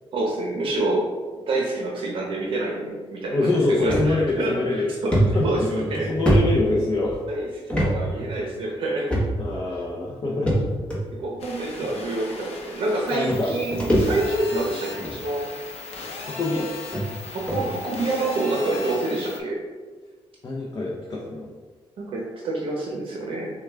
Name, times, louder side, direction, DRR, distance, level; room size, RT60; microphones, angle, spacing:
voice 1, 0.1-1.1 1.5-6.1 7.3-7.5 7.8-9.1 11.2-15.5 17.3-19.6 22.0-23.5, right 2 dB, 60° right, -2 dB, 0.8 m, -27 dB
voice 2, 3.3-4.9 5.3-7.2 9.4-10.5 13.1-13.6 16.2-16.7 20.4-21.5, left 2 dB, 35° left, -3 dB, 0.6 m, -25 dB
sound 1, 3.9-4.1 4.5-4.6 5.1-7.2 7.7-7.9 8.2-8.3 9.1-9.6 10.5-11.0 11.9-12.0 13.0-13.1 13.3-14.5 14.9-15.2 16.0-16.1 16.6-16.7 16.9-17.0 17.5-17.7, right 1 dB, 10° left, 1.0 m, -23 dB
sound 2, 11.4-19.4, left 3 dB, 85° left, 0.8 m, -38 dB
6.4 x 2.3 x 3.4 m, 1.4 s
wide cardioid pair, 160°, 10 cm